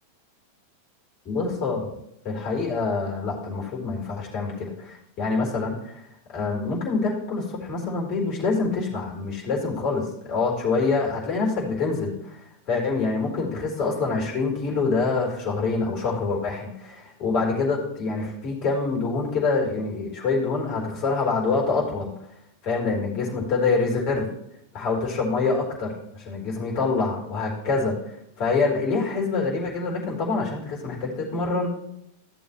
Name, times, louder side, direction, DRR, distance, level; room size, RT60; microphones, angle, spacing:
voice 1, 1.3-2.0 2.2-6.0 6.3-12.4 12.7-22.1 22.6-24.3 24.7-28.0 28.4-31.7, left 4 dB, 35° left, -1 dB, 4.1 m, -26 dB
14.5 x 7.1 x 3.1 m, 0.77 s
figure-of-eight pair, 90°, 0 cm